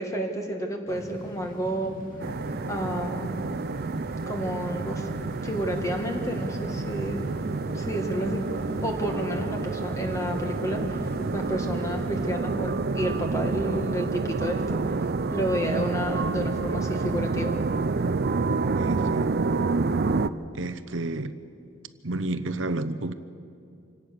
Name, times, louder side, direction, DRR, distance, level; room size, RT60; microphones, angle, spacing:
voice 1, 0.0-2.0 2.7-3.4 4.3-5.1 5.4-7.3 7.7-8.4 8.8-14.8 15.3-17.6, equal, 15° left, 1.9 m, -30 dB
sound 1, 0.9-12.3, equal, 45° left, 2.5 m, -41 dB
sound 2, 2.2-20.3, right 3 dB, 50° right, 0.5 m, -28 dB
voice 2, 18.8-19.4 20.5-21.4 22.0-23.1, right 2 dB, 70° right, 0.9 m, -30 dB
26.0 x 17.5 x 6.7 m
head